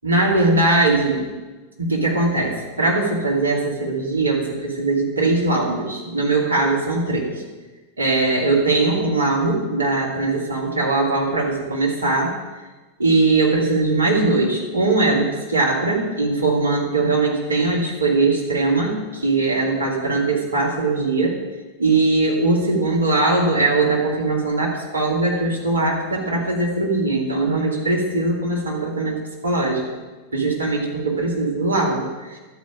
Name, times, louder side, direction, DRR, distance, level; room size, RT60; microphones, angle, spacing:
voice 1, 0.0-1.2 1.8-7.3 8.0-12.3 13.0-21.4 21.8-30.0 30.3-32.4, right 2 dB, 75° right, -3 dB, 2.8 m, -20 dB
12.0 x 5.2 x 8.6 m, 1.2 s
figure-of-eight pair, 90°, 0 cm